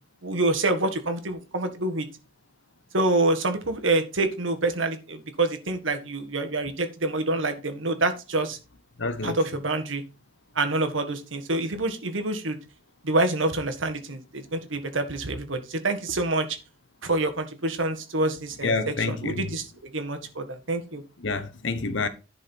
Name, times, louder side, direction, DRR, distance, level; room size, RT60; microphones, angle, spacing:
voice 1, 0.2-2.1 2.9-8.6 9.2-10.0 10.5-12.6 13.0-16.5 17.0-19.6 19.9-21.0, right 2 dB, 90° right, 1.7 m, -27 dB
voice 2, 9.0-9.4 18.6-19.5 21.2-22.1, left 3 dB, 70° left, 1.1 m, -28 dB
11.0 x 5.0 x 4.4 m
head